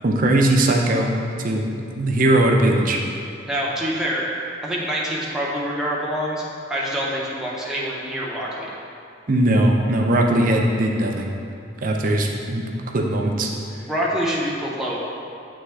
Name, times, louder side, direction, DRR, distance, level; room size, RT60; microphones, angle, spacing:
voice 1, 0.0-1.1 1.4-3.0 9.3-11.3 11.8-12.6 12.9-13.5, right 1 dB, 45° right, 1 dB, 0.5 m, -19 dB
voice 2, 3.5-4.2 4.6-6.4 6.7-8.7 13.9-15.0, equal, 5° right, -6 dB, 0.8 m, -25 dB
8.2 x 3.5 x 3.4 m, 2.5 s
head